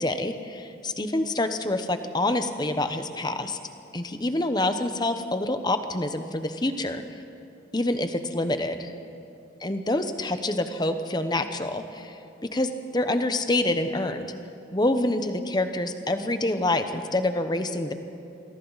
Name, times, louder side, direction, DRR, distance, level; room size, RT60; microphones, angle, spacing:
voice 1, 0.0-3.6 3.9-7.0 7.7-8.9 9.6-14.3 14.7-17.9, left 2 dB, 20° left, 8 dB, 1.0 m, -27 dB
28.0 x 22.5 x 4.1 m, 2.9 s
head